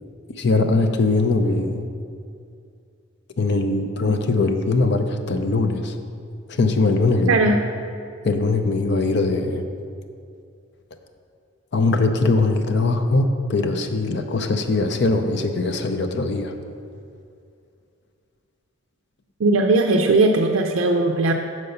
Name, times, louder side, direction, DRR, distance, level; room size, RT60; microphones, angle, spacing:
voice 1, 0.4-1.8 3.4-6.0 6.5-7.3 8.2-9.6 10.9-11.0 11.7-16.5, left 3 dB, 55° left, 7 dB, 0.5 m, -21 dB
voice 2, 7.3-7.6 19.4-21.3, right 2 dB, 75° right, 3 dB, 0.4 m, -18 dB
6.7 x 4.7 x 6.7 m, 2.4 s
head